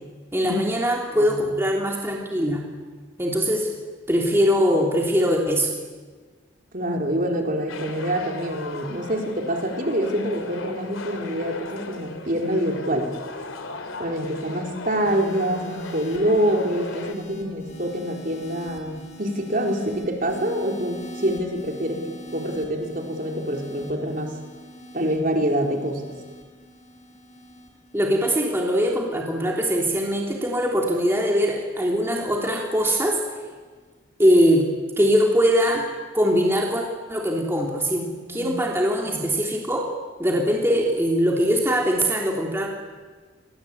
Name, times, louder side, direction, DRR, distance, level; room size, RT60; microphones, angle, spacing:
voice 1, 0.3-2.7 3.2-3.7 4.1-5.7 27.9-33.2 34.2-34.7 35.0-35.9 36.1-39.9 40.2-42.7, equal, 10° right, 0 dB, 3.1 m, -22 dB
voice 2, 1.1-1.5 6.7-13.1 14.0-24.4 24.9-26.1 38.3-38.6 39.1-39.3, equal, 40° right, 2 dB, 4.2 m, -26 dB
sound 1, 7.7-17.1, left 2 dB, 85° left, 3.3 m, -37 dB
sound 2, 15.0-31.5 32.4-32.7, equal, 35° left, 6.7 m, -43 dB
30.0 x 23.0 x 8.6 m, 1.4 s
head